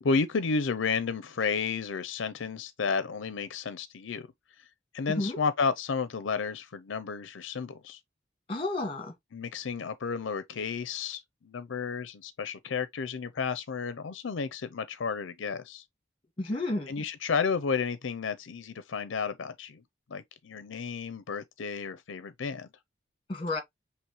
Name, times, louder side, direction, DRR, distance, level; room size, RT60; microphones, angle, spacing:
voice 1, 0.0-4.3 4.9-8.0 9.3-15.8 16.9-19.8 20.1-22.7, left 5 dB, 75° left, 0.5 m, -32 dB
voice 2, 8.5-9.1 16.4-17.0 23.3-23.6, left 2 dB, 25° left, 1.4 m, -31 dB
6.2 x 3.0 x 2.9 m
head